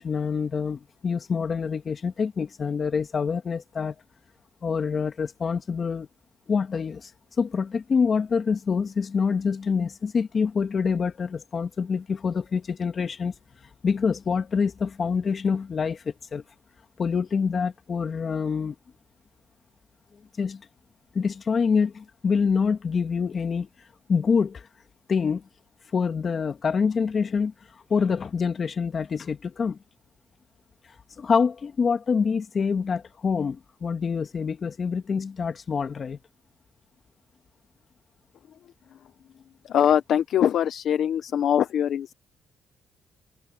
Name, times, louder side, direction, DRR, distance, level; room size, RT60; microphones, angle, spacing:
voice 1, 0.0-4.0 4.6-6.1 6.5-7.1 7.4-13.4 13.8-16.4 17.0-18.8 20.4-20.7 21.1-23.7 24.1-24.7 25.1-25.4 25.9-29.8 31.2-36.2, left 5 dB, 45° left, 1.9 m, -26 dB
voice 2, 39.6-42.1, left 9 dB, 70° left, 0.8 m, -22 dB
cardioid pair, 90°, 0 cm